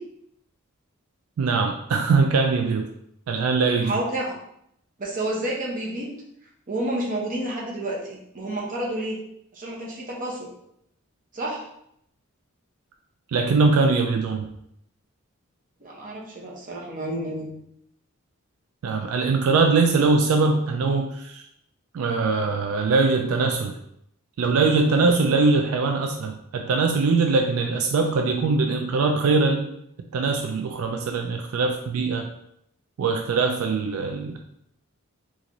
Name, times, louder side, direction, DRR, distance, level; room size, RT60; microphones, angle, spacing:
voice 1, 1.4-2.9 3.3-4.0 13.3-14.5 18.8-21.4 21.9-23.7 24.4-29.7 30.1-32.3 33.0-34.4, right 4 dB, 80° right, 4 dB, 0.3 m, -22 dB
voice 2, 3.8-4.3 5.0-6.2 6.7-9.2 9.5-10.5 11.3-11.7 15.8-17.5, right 1 dB, 40° right, -3 dB, 0.8 m, -30 dB
3.8 x 2.5 x 2.9 m, 0.74 s
head